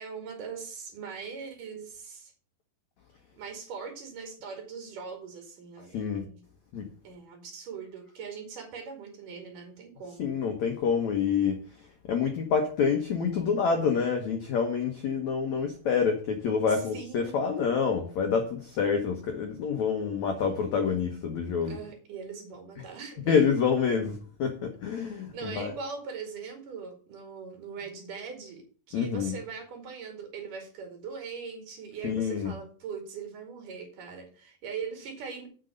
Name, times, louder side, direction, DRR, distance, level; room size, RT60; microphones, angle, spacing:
voice 1, 0.0-2.3 3.4-6.4 7.0-10.3 16.6-17.5 21.7-23.4 25.0-35.5, right 5 dB, 55° right, 3 dB, 3.7 m, -41 dB
voice 2, 5.9-6.2 6.7-6.9 10.2-11.6 12.1-21.8 23.3-25.7 28.9-29.4 32.0-32.5, left 6 dB, 70° left, 4 dB, 1.8 m, -27 dB
8.0 x 6.3 x 7.8 m, 0.42 s
omnidirectional pair, 4.8 m